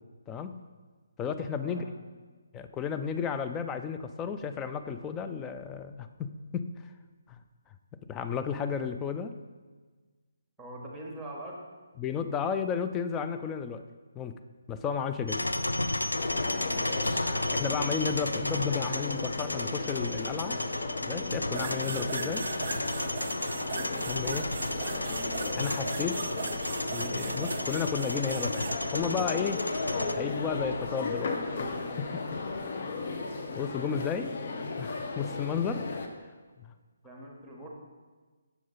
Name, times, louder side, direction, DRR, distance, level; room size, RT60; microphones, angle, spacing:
voice 1, 0.3-0.6 1.2-1.8 2.5-6.7 7.3-7.4 8.1-9.3 12.0-13.8 14.1-14.3 14.7-15.4 17.5-20.6 21.1-22.5 24.1-24.5 25.5-26.2 26.9-29.7 30.1-31.7 32.0-32.1 33.6-35.9 36.6-36.7, left 6 dB, 15° left, 8 dB, 0.3 m, -33 dB
voice 2, 10.6-11.6 37.0-37.7, right 1 dB, 5° right, -2 dB, 1.3 m, -43 dB
sound 1, 15.3-30.1, left 1 dB, 80° left, 0.4 m, -33 dB
sound 2, 16.1-36.1, left 3 dB, 45° left, 0.8 m, -35 dB
sound 3, 21.5-28.8, right 5 dB, 45° right, 0.5 m, -39 dB
6.9 x 6.0 x 4.0 m, 1.4 s
figure-of-eight pair, 140°, 0 cm